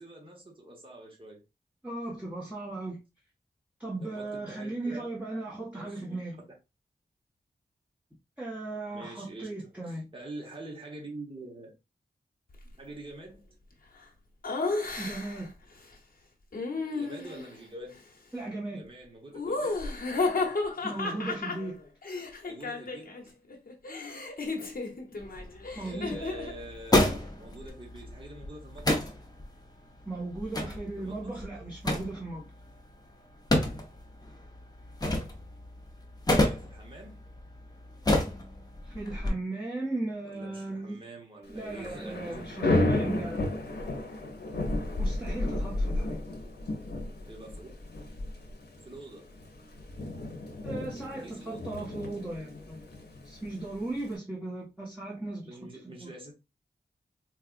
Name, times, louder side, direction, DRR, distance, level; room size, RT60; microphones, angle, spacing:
voice 1, 0.0-1.4 4.0-5.1 5.7-6.0 8.9-11.7 12.8-13.6 16.9-18.0 18.7-19.9 22.5-23.3 25.8-29.0 31.0-31.5 36.3-37.3 40.2-43.0 47.2-47.7 48.8-49.4 51.2-51.8 55.5-56.3, right 2 dB, 30° right, 1.1 m, -46 dB
voice 2, 1.8-3.0 3.8-6.4 8.4-10.1 15.0-15.5 18.3-18.8 20.8-21.8 24.6-24.7 25.1-25.2 25.7-26.2 30.0-32.5 38.8-41.0 41.5-43.4 45.0-46.3 50.6-52.8 53.2-55.5 55.8-56.1, right 2 dB, 10° right, 1.2 m, -37 dB
Laughter, 14.4-15.5 16.5-17.5 19.3-23.2 23.5-26.6, left 3 dB, 60° left, 1.0 m, -33 dB
sound 1, 25.2-39.3, left 1 dB, 25° left, 0.8 m, -32 dB
Thunder / Rain, 41.5-54.2, left 2 dB, 85° left, 0.7 m, -33 dB
4.4 x 2.4 x 2.5 m
wide cardioid pair, 80°, 17 cm